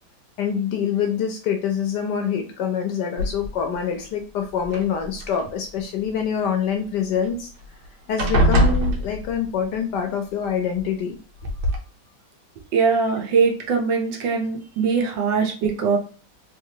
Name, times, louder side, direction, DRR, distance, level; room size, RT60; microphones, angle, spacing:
voice 1, 0.4-7.5 8.1-11.2, left 7 dB, 70° left, 5 dB, 1.0 m, -25 dB
sound 1, 3.2-3.7 4.6-5.4 7.2-7.3 7.6-7.8 8.2-9.6 10.8-10.9 11.4-11.8, equal, 85° right, 1.7 m, -22 dB
voice 2, 12.7-16.0, right 5 dB, 70° right, 1 dB, 1.5 m, -21 dB
3.7 x 3.4 x 2.8 m, 0.37 s
omnidirectional pair, 2.2 m